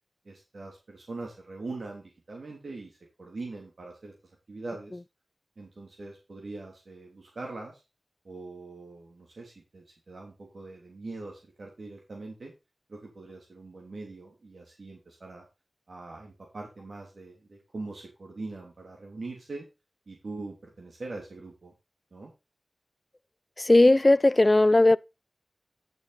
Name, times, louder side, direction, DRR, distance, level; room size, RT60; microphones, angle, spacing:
voice 1, 0.2-4.1 4.5-5.0 5.6-7.8 8.2-12.5 12.9-15.5 15.9-19.6 20.1-21.7 22.1-22.3, right 3 dB, 70° right, 2.8 m, -42 dB
voice 2, 23.6-25.0, left 2 dB, 35° left, 0.5 m, -18 dB
10.5 x 6.3 x 4.1 m
wide cardioid pair, 50°, 0 cm